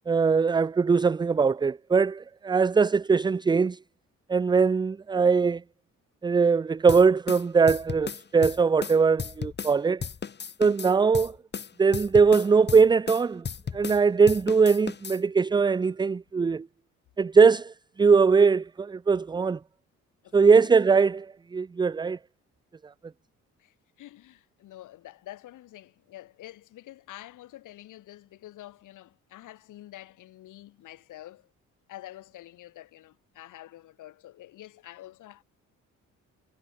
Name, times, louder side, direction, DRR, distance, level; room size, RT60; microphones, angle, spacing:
voice 1, 0.1-3.8 4.3-5.6 6.2-10.0 10.6-11.4 11.8-13.4 13.7-16.7 17.2-17.7 18.0-19.6 20.3-21.3 21.5-22.2, right 5 dB, 15° right, 0.4 m, -21 dB
sound 1, 6.9-9.8 10.0-14.0 14.3-15.2, left 6 dB, 35° left, 1.5 m, -35 dB
voice 2, 20.2-20.8 23.6-31.5 31.9-35.4, left 14 dB, 85° left, 7.2 m, -47 dB
cardioid pair, 90°, 30 cm